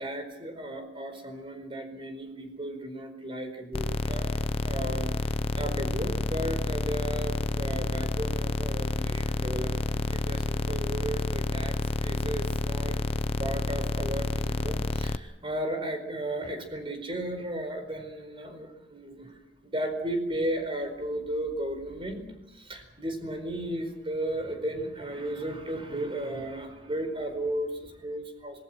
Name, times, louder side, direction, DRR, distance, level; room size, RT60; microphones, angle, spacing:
voice 1, 0.0-5.1 5.6-13.0 13.4-19.3 19.6-22.3 22.5-28.6, right 1 dB, 30° right, 7 dB, 4.5 m, -35 dB
sound 1, 3.7-15.2, left 2 dB, 35° left, 0.7 m, -29 dB
26.5 x 20.5 x 6.2 m, 0.96 s
head